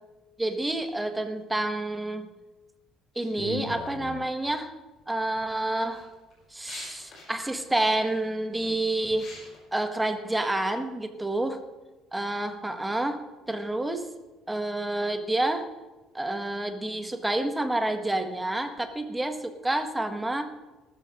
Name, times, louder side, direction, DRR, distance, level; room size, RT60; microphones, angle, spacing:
voice 1, 0.4-2.3 3.2-4.7 5.1-6.1 6.5-9.4 9.7-11.6 12.1-14.1 14.5-15.7 16.1-20.5, right 1 dB, 5° right, 7 dB, 0.9 m, -29 dB
sound 1, 3.1-4.2 5.0-5.4 5.9-9.6, left 3 dB, 40° left, 5.3 m, -40 dB
18.5 x 13.5 x 2.8 m, 1.2 s
cardioid pair, 170°, 0 cm